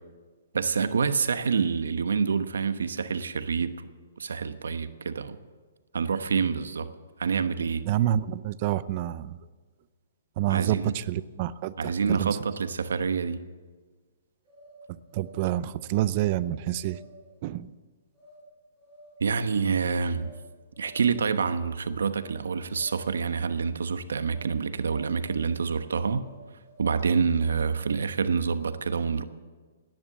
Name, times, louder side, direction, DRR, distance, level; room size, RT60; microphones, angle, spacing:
voice 1, 0.5-3.9 4.2-5.4 5.9-6.9 7.2-7.8 10.5-11.0 11.8-13.4 19.2-20.3 20.8-26.2 26.8-29.2, right 5 dB, 90° right, 11 dB, 1.1 m, -27 dB
voice 2, 7.9-9.4 10.4-12.4 15.1-17.0 17.4-17.7, right 13 dB, 35° right, 17 dB, 0.6 m, -28 dB
sound 1, 14.4-15.5 16.2-16.5 16.8-17.4 18.1-18.4 18.7-19.3 20.1-20.4 20.7-21.3 22.1-22.4 22.7-23.3 24.3-24.5 24.8-25.6 26.1-27.2, equal, 10° left, 5.8 m, -52 dB
17.5 x 10.5 x 7.3 m, 1.4 s
hypercardioid pair, 155°, 0 cm